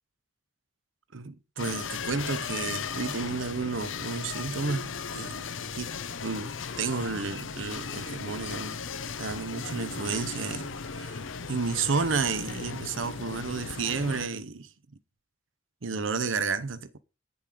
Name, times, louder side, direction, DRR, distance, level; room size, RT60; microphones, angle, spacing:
voice 1, 1.1-5.4 5.7-8.8 9.2-11.2 11.5-14.7 15.8-17.0, right 4 dB, 80° right, 0.8 m, -32 dB
sound 1, 1.6-14.3, left 5 dB, 80° left, 0.8 m, -36 dB
9.4 x 7.1 x 4.9 m
head